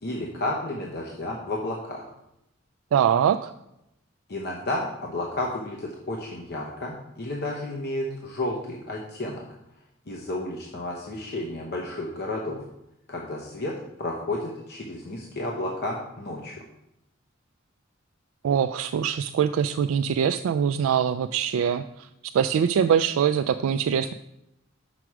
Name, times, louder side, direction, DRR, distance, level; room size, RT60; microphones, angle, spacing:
voice 1, 0.0-2.1 4.3-9.4 10.1-12.6 13.1-13.7 14.0-16.6, left 1 dB, 55° left, -1 dB, 0.9 m, -32 dB
voice 2, 2.9-3.5 18.4-22.1 22.3-24.1, right 8 dB, 90° right, 8 dB, 0.3 m, -23 dB
6.0 x 4.6 x 6.1 m, 0.84 s
head